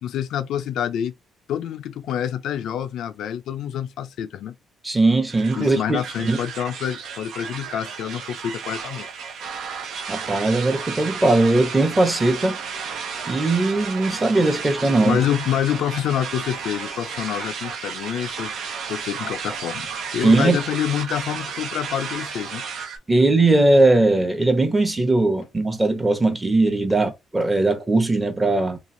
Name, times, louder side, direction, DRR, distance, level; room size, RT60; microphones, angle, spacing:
voice 1, 0.0-1.1 1.5-4.6 5.6-9.1 15.0-18.5 18.9-22.6, left 10 dB, 80° left, 0.4 m, -27 dB
voice 2, 4.8-6.0 6.2-6.4 10.1-12.6 13.3-15.2 20.2-20.6 23.1-28.8, right 2 dB, 20° right, 0.8 m, -19 dB
sound 1, 5.3-23.0, right 6 dB, 75° right, 0.7 m, -33 dB
3.0 x 2.4 x 2.6 m
cardioid pair, 90°, 0 cm